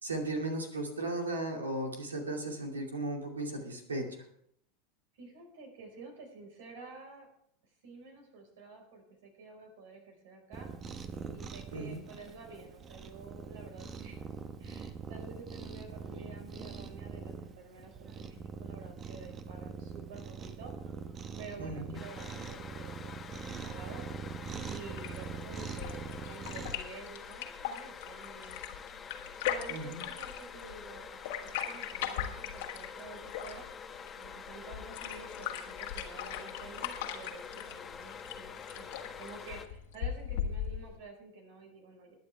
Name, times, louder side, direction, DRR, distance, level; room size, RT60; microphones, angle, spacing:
voice 1, 0.0-4.1 11.7-12.0 21.6-22.0 29.7-30.0, right 2 dB, 85° right, 3 dB, 2.5 m, -36 dB
voice 2, 5.2-7.3 7.8-10.7 11.3-14.2 14.6-20.7 21.4-24.1 24.7-28.6 29.4-33.7 34.2-42.1, right 3 dB, 65° right, 3 dB, 4.9 m, -50 dB
Cat, 10.5-26.7, right 6 dB, 30° right, 1.1 m, -43 dB
sound 1, 21.9-39.7, left 6 dB, 25° left, 1.3 m, -47 dB
sound 2, 24.9-41.0, left 10 dB, 65° left, 1.6 m, -40 dB
21.5 x 9.5 x 3.5 m, 0.70 s
hypercardioid pair, 85°, 0 cm